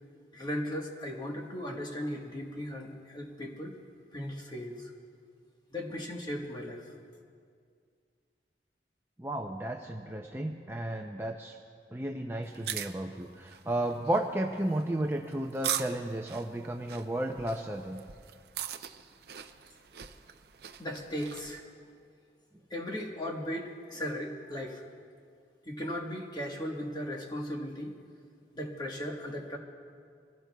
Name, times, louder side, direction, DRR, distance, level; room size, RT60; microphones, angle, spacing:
voice 1, 0.3-3.8 4.1-4.9 5.7-6.9 20.8-21.7 22.7-24.8 25.7-27.9 28.5-29.6, equal, 25° left, 0 dB, 1.3 m, -37 dB
voice 2, 9.2-11.6 11.9-18.0, right 1 dB, 15° right, 2 dB, 0.5 m, -33 dB
sound 1, 12.4-21.5, right 9 dB, 60° right, 0.6 m, -41 dB
23.5 x 16.5 x 2.3 m, 2.2 s
head